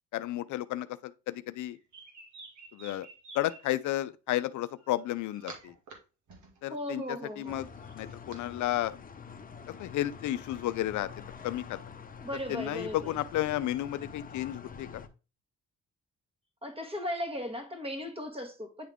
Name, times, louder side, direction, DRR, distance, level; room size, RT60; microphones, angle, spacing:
voice 1, 0.1-1.8 2.7-3.1 3.3-5.7 6.6-7.0 7.4-7.7 7.9-8.9 9.8-11.1 11.4-11.8 12.5-15.0, left 14 dB, 75° left, 0.5 m, -32 dB
sound 1, 1.6-3.9 4.8-5.9 6.3-8.4, right 4 dB, 70° right, 2.1 m, -50 dB
voice 2, 6.7-7.6 12.2-13.1 16.6-18.9, left 1 dB, 20° right, 1.7 m, -37 dB
sound 2, 7.5-15.1, left 6 dB, 30° left, 0.8 m, -46 dB
9.4 x 3.6 x 3.5 m
cardioid pair, 90°, 30 cm